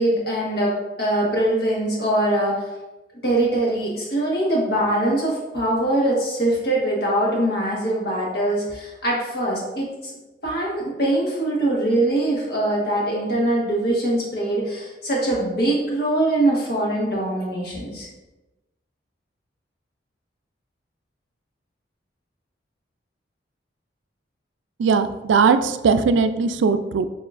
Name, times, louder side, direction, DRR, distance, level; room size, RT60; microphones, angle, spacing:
voice 1, 0.0-2.7 3.2-10.1 10.4-18.1, right 1 dB, 55° left, -4 dB, 1.4 m, -22 dB
voice 2, 24.8-27.1, right 5 dB, 85° right, 10 dB, 0.3 m, -19 dB
7.0 x 2.9 x 2.4 m, 1.0 s
head